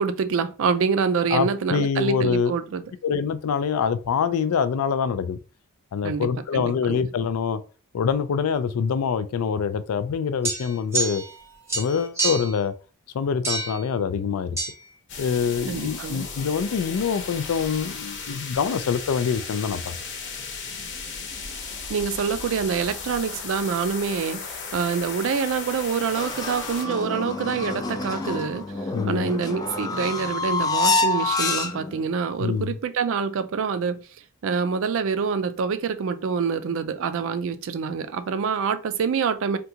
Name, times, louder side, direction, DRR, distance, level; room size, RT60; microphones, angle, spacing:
voice 1, 0.0-2.8 6.0-7.1 15.7-16.3 21.9-28.7 29.1-34.0 34.4-39.6, right 6 dB, 60° right, 0.4 m, -26 dB
voice 2, 1.3-2.5 3.0-5.4 5.9-7.6 7.9-11.2 11.7-12.7 13.1-14.6 15.2-20.0 28.9-29.3 32.4-32.8, left 6 dB, 90° left, 0.4 m, -25 dB
sound 1, 10.4-11.4 11.7-12.6 13.4-13.8 14.6-14.7, right 3 dB, 15° right, 0.7 m, -27 dB
sound 2, 15.1-26.8, left 5 dB, 55° left, 0.8 m, -35 dB
sound 3, 26.2-32.0, left 3 dB, 20° left, 0.4 m, -27 dB
3.7 x 2.3 x 2.7 m
head